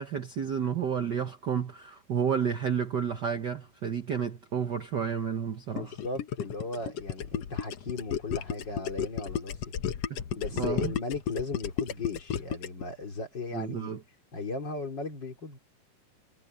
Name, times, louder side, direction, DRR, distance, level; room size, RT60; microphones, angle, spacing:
voice 1, 0.0-5.9 10.1-10.2 10.6-10.9 13.5-14.0, right 7 dB, 75° right, 1.0 m, -31 dB
voice 2, 5.7-9.6 10.4-13.9 14.3-15.6, left 3 dB, 35° left, 3.8 m, -36 dB
Gurgling, 5.8-12.8, left 9 dB, 60° left, 2.0 m, -33 dB
omnidirectional pair, 3.8 m